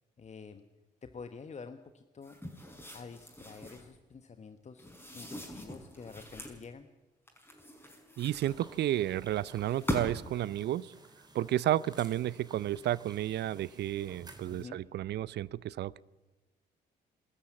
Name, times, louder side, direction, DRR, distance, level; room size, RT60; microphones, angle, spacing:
voice 1, 0.2-0.6 1.0-2.4 2.9-6.9 14.5-14.8, left 5 dB, 35° left, 9 dB, 1.2 m, -48 dB
sound 1, 2.2-3.9 4.8-6.6 7.3-8.9 9.5-10.4, equal, 10° left, 5.5 m, -41 dB
voice 2, 8.2-10.9 11.3-16.0, right 13 dB, 55° right, 22 dB, 0.6 m, -32 dB
sound 2, 8.4-14.7, right 2 dB, 20° right, 3.3 m, -55 dB
23.5 x 13.5 x 8.6 m, 1.2 s
hypercardioid pair, 45°, 21 cm